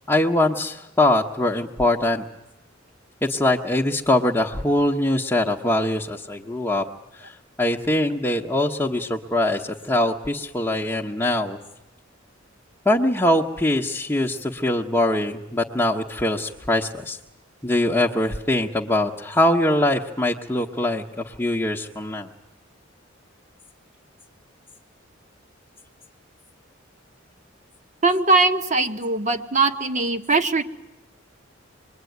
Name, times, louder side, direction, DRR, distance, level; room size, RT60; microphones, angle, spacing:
voice 1, 0.1-2.2 3.2-6.8 7.2-7.3 7.6-11.6 12.8-17.2 17.6-22.3, left 1 dB, 10° left, -2 dB, 1.1 m, -22 dB
voice 2, 28.0-30.6, right 3 dB, 40° right, 7 dB, 1.5 m, -20 dB
26.0 x 22.0 x 9.4 m, 0.95 s
head